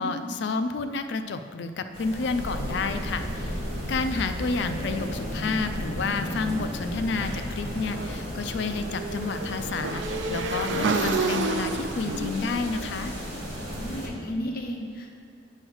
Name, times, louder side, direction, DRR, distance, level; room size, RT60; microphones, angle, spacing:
voice 1, 0.0-3.6 3.9-13.1, left 4 dB, 65° left, 9 dB, 0.4 m, -30 dB
sound 1, 1.9-14.1, equal, 50° right, 2.0 m, -34 dB
Motorcycle / Engine, 7.9-14.0, right 3 dB, 75° right, 0.5 m, -30 dB
voice 2, 13.7-15.2, equal, 50° left, 0 dB, 0.8 m, -34 dB
8.7 x 3.2 x 6.2 m, 2.2 s
head